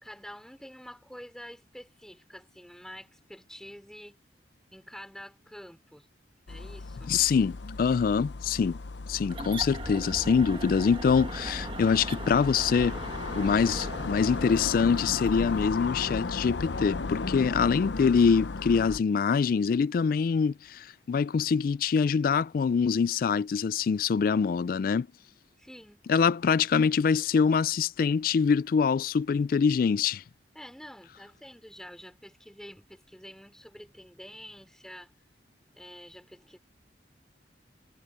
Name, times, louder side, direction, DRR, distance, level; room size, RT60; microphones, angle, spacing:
voice 1, 0.0-4.2 4.7-6.1 6.5-7.1 25.6-26.1 30.5-35.1 35.7-36.6, equal, 5° left, 3.8 m, -47 dB
sound 1, 6.5-19.0, left 3 dB, 80° left, 0.7 m, -36 dB
voice 2, 7.1-8.8 9.1-13.0 13.3-25.1 26.1-30.2, left 6 dB, 50° left, 0.3 m, -24 dB
sound 2, 9.3-15.7, right 2 dB, 30° right, 1.1 m, -40 dB
head